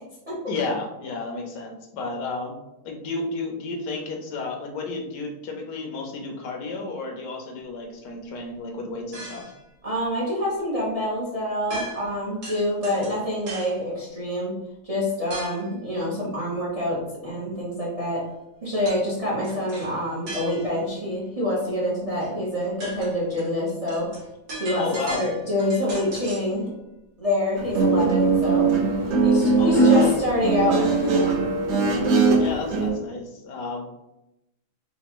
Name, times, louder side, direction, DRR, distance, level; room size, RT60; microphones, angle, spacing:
voice 1, 0.5-2.5 2.8-9.5 24.8-25.3 29.6-30.2 32.4-33.9, left 3 dB, 90° left, 2 dB, 1.3 m, -32 dB
sound 1, 9.1-9.6 11.7-12.2 12.4-13.8 15.3-15.7 18.9-19.1 19.4-20.9 22.2-22.3 22.6-26.5, right 1 dB, 70° right, 1.6 m, -38 dB
voice 2, 9.8-14.5 14.8-18.2 18.6-24.1 24.6-24.9 25.1-26.7 27.2-28.7 29.2-31.3, left 1 dB, 30° right, -6 dB, 0.6 m, -26 dB
Guitar, 27.6-32.9, right 3 dB, 55° right, 0.9 m, -20 dB
4.2 x 2.3 x 2.9 m, 0.89 s
omnidirectional pair, 1.7 m